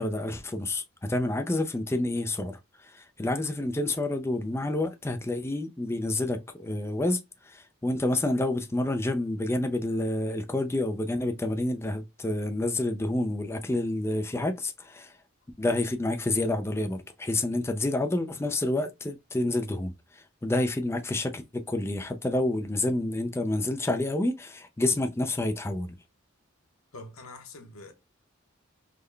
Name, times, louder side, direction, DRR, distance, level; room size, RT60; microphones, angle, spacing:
voice 1, 0.0-15.1 15.6-26.0, left 2 dB, 10° left, 0.4 m, -29 dB
voice 2, 26.9-27.9, left 2 dB, 90° left, 0.8 m, -44 dB
3.7 x 2.1 x 3.2 m
head